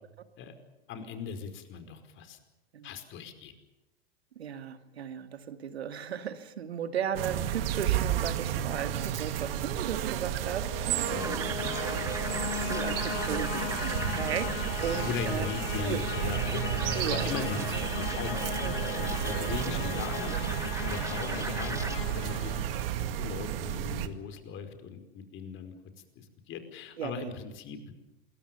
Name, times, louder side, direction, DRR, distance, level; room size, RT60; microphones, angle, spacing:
voice 1, 0.9-2.4 2.8-3.5 11.1-12.0 15.0-20.4 20.8-22.6 23.2-25.7 26.1-27.8, left 6 dB, 40° left, 8 dB, 5.0 m, -39 dB
voice 2, 4.4-11.5 11.8-12.0 12.6-15.5 15.8-16.0 16.9-17.3 17.7-17.8 18.6-19.5 27.0-27.3, right 8 dB, 85° right, 9 dB, 2.3 m, -36 dB
sound 1, 7.1-24.1, right 11 dB, 65° right, 2.2 m, -32 dB
sound 2, 10.2-23.2, left 14 dB, 70° left, 0.9 m, -38 dB
sound 3, 11.2-22.0, right 3 dB, 10° right, 1.3 m, -40 dB
27.5 x 22.5 x 7.0 m, 0.97 s
hypercardioid pair, 100°, 31 cm